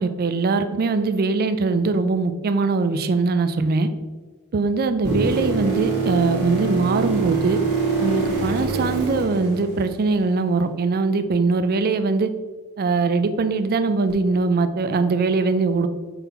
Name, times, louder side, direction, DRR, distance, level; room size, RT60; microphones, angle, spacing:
voice 1, 0.0-3.9 4.5-7.6 8.0-12.3 12.8-15.9, right 3 dB, 45° right, 11 dB, 0.4 m, -21 dB
sound 1, 5.0-10.1 14.1-14.2, right 4 dB, 75° right, 1.6 m, -24 dB
5.7 x 4.1 x 4.0 m, 1.4 s
head